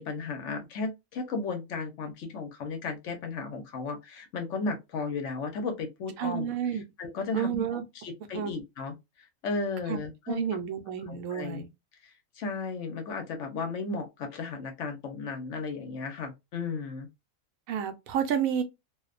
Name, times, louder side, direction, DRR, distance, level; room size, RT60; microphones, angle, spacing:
voice 1, 0.0-6.5 7.0-7.6 8.0-8.9 9.4-10.6 11.1-11.6 12.4-17.1, left 4 dB, 65° left, 0.9 m, -34 dB
voice 2, 6.2-6.8 7.3-7.8 8.3-8.6 9.9-10.0 10.3-11.7 17.7-18.6, right 8 dB, 90° right, 1.0 m, -30 dB
2.5 x 2.1 x 2.4 m
omnidirectional pair, 1.4 m